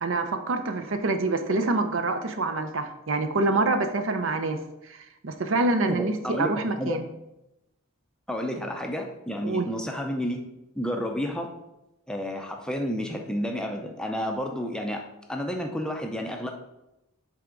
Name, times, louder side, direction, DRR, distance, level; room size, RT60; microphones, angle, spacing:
voice 1, 0.0-4.6 4.9-5.0 5.2-7.0 9.4-9.7, right 2 dB, 60° right, 8 dB, 0.6 m, -26 dB
voice 2, 5.9-6.5 6.8-7.0 8.3-10.4 10.8-11.5 12.1-15.0 15.3-16.5, equal, 5° left, 2 dB, 0.5 m, -30 dB
7.6 x 3.5 x 3.8 m, 0.91 s
head